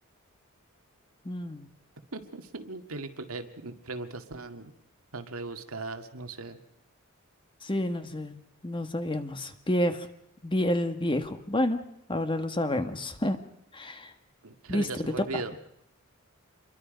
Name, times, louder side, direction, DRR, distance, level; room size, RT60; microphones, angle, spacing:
voice 1, 1.2-1.7 7.6-10.1 10.4-11.8 12.1-13.4 13.7-14.1 14.7-14.9 15.2-15.4, left 1 dB, 25° left, 8 dB, 1.6 m, -29 dB
voice 2, 2.1-4.7 5.1-6.6 14.4-15.6, right 3 dB, 85° right, 6 dB, 1.9 m, -38 dB
27.0 x 22.5 x 5.2 m, 0.75 s
head